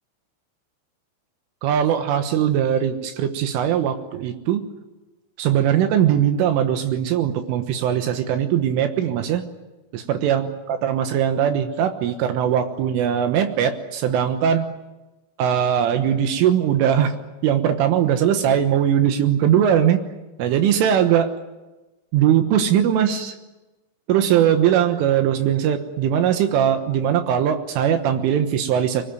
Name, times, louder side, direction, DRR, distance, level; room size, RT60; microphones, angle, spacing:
voice 1, 1.6-4.7 5.4-9.4 9.9-14.7 15.4-17.2 17.4-20.0 20.4-21.4 22.1-23.4 24.1-29.0, right 9 dB, 75° right, 7 dB, 3.7 m, -20 dB
25.0 x 20.0 x 9.2 m, 1.1 s
omnidirectional pair, 5.9 m